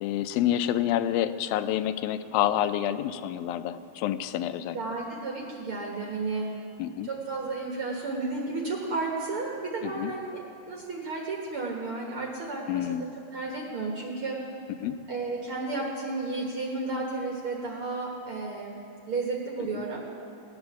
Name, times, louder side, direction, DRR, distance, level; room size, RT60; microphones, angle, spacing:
voice 1, 0.0-4.8 6.8-7.1 9.8-10.1 12.7-13.1 14.8-15.0 19.7-19.8, left 11 dB, 85° left, 11 dB, 2.4 m, -28 dB
voice 2, 4.7-6.5 7.1-14.4 15.1-18.8 19.1-20.0, right 3 dB, 55° right, -1 dB, 1.6 m, -33 dB
17.5 x 9.7 x 7.1 m, 2.6 s
omnidirectional pair, 4.1 m